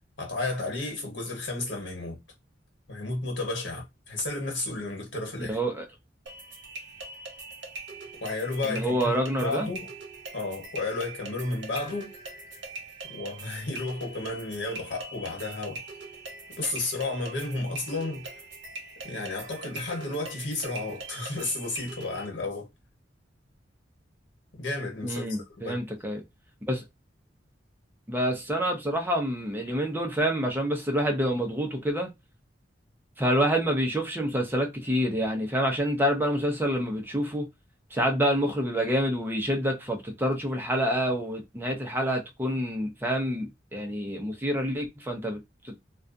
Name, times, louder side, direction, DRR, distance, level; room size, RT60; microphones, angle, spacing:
voice 1, 0.2-2.2 2.9-5.6 8.2-9.9 10.3-12.1 13.1-15.8 16.5-18.3 19.0-22.7 24.5-25.2 25.6-25.8, left 2 dB, 90° left, 1.2 m, -32 dB
voice 2, 5.5-5.8 8.6-9.7 25.0-26.2 26.7-26.8 28.1-32.1 33.2-37.5 37.9-45.4, equal, 10° right, 0.6 m, -27 dB
sound 1, 6.3-22.3, right 3 dB, 70° right, 0.8 m, -42 dB
2.4 x 2.3 x 2.5 m
head